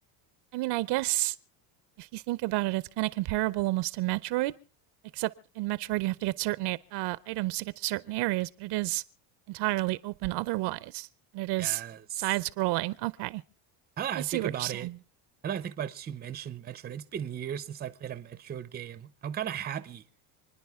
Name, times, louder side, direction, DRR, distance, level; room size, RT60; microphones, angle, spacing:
voice 1, 0.5-1.3 2.0-4.5 5.1-5.3 5.6-9.0 9.5-11.1 11.3-11.8 12.2-13.4 14.1-14.9, right 19 dB, 60° right, 0.6 m, -30 dB
voice 2, 11.6-12.3 14.0-14.9 15.4-20.0, right 9 dB, 20° right, 0.6 m, -36 dB
29.0 x 10.0 x 3.5 m
cardioid pair, 140°, 47 cm